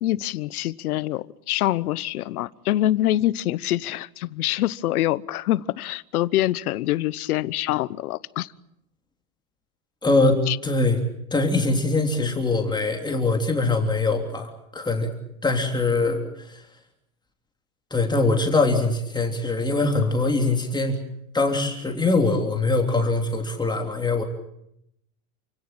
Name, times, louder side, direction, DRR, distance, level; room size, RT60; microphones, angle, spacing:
voice 1, 0.0-8.5 10.5-10.6, left 14 dB, 85° left, 19 dB, 1.1 m, -25 dB
voice 2, 10.0-11.0 11.3-15.1 15.4-16.6 17.9-21.0 21.3-24.2, left 3 dB, 10° left, 2 dB, 3.3 m, -22 dB
29.0 x 17.0 x 9.0 m, 0.80 s
supercardioid pair, 140°, 43 cm